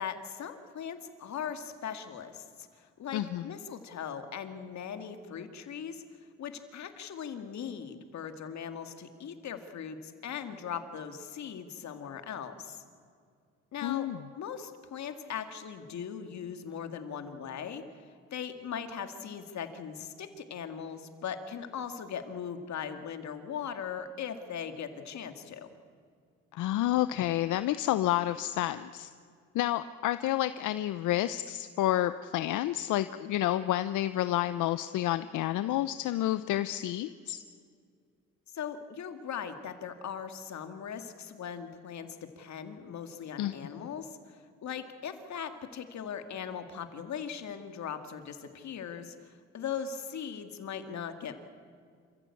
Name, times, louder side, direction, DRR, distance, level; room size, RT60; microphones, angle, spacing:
voice 1, 0.0-6.0 6.4-12.8 13.7-14.1 14.3-25.7 38.5-42.1 42.4-51.4, left 7 dB, 65° left, 8 dB, 2.2 m, -39 dB
voice 2, 3.1-3.4 13.8-14.2 26.5-29.1 29.5-37.4 43.4-43.6, left 14 dB, 85° left, 13 dB, 0.7 m, -29 dB
28.0 x 15.0 x 8.5 m, 2.2 s
cardioid pair, 90°, 30 cm